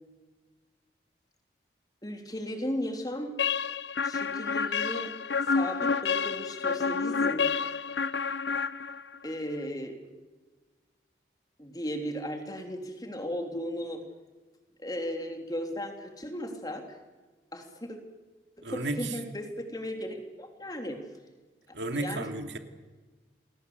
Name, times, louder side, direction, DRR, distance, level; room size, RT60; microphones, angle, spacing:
voice 1, 2.0-3.3 4.0-5.1 5.5-7.5 9.2-10.0 11.6-14.0 14.8-16.9 17.5-18.0 18.6-21.0 21.9-22.3, equal, 20° left, 4 dB, 3.4 m, -36 dB
sound 1, 3.4-9.3, left 5 dB, 85° left, 0.8 m, -29 dB
voice 2, 18.6-19.2 21.7-22.6, right 2 dB, 85° right, 6 dB, 2.7 m, -33 dB
29.0 x 21.0 x 8.1 m, 1.3 s
head